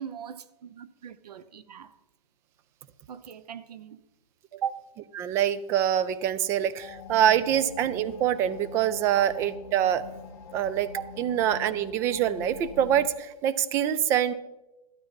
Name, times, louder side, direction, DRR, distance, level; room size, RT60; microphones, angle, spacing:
voice 1, 0.0-2.0 3.1-4.0 4.5-4.9 9.1-9.3 10.9-11.1, right 8 dB, 80° right, 0.9 m, -38 dB
voice 2, 5.2-10.0 10.5-10.9 11.2-14.3, right 10 dB, 15° right, 0.3 m, -25 dB
sound 1, 6.8-13.1, left 6 dB, 55° left, 2.2 m, -44 dB
12.5 x 12.5 x 4.1 m
hypercardioid pair, 155°, 20 cm